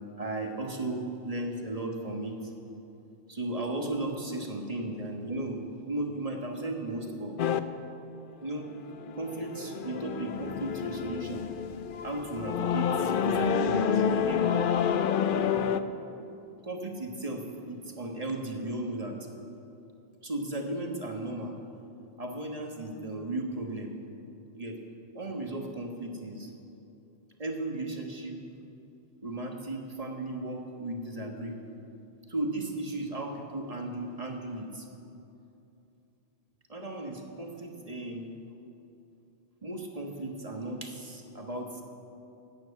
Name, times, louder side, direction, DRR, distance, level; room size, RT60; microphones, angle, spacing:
voice 1, 0.2-2.4 3.3-7.4 8.4-8.7 9.1-11.5 12.0-14.5 16.6-19.2 20.2-21.5 22.2-23.9 24.5-24.8 25.1-26.5 27.4-28.4 29.2-31.6 32.3-34.9 36.7-38.3 39.6-41.8, right 2 dB, 35° right, 2 dB, 1.4 m, -35 dB
sound 1, 7.4-7.6 8.7-15.8, left 7 dB, 60° left, 0.7 m, -28 dB
12.5 x 9.2 x 8.3 m, 2.8 s
omnidirectional pair, 1.1 m